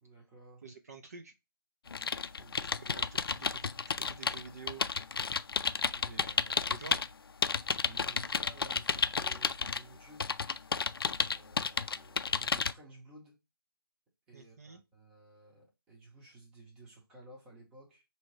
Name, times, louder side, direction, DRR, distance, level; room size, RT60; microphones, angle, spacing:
voice 1, 0.0-0.6 2.4-2.8 5.8-6.4 7.8-10.3 11.2-13.4 14.3-18.0, right 2 dB, 5° right, 0.7 m, -55 dB
voice 2, 0.6-1.3 2.7-4.8 6.1-7.0 14.3-14.8, right 4 dB, 40° right, 0.5 m, -49 dB
sound 1, 1.9-7.1 7.4-9.8 10.2-12.7, left 5 dB, 70° left, 0.4 m, -32 dB
4.3 x 2.8 x 3.0 m
figure-of-eight pair, 165°, 13 cm